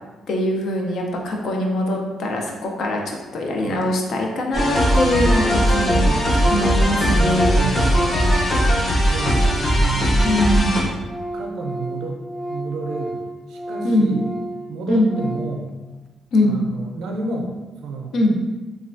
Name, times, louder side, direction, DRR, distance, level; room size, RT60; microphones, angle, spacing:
voice 1, 0.3-7.7 10.2-10.8 13.8-14.1 14.9-15.1 16.3-16.6 18.1-18.4, left 1 dB, 65° left, 1 dB, 0.5 m, -22 dB
sound 1, 4.5-10.8, equal, 30° left, 0.7 m, -18 dB
Organ, 5.5-5.9 6.1-9.7 10.0-15.7, right 1 dB, ahead, 0.3 m, -33 dB
voice 2, 7.6-8.2 9.1-10.3 11.3-14.3 14.7-15.7 16.4-17.6 17.8-18.1, right 3 dB, 85° right, 1 dB, 0.4 m, -30 dB
3.1 x 2.2 x 2.5 m, 1.2 s
cardioid pair, 90°, 0 cm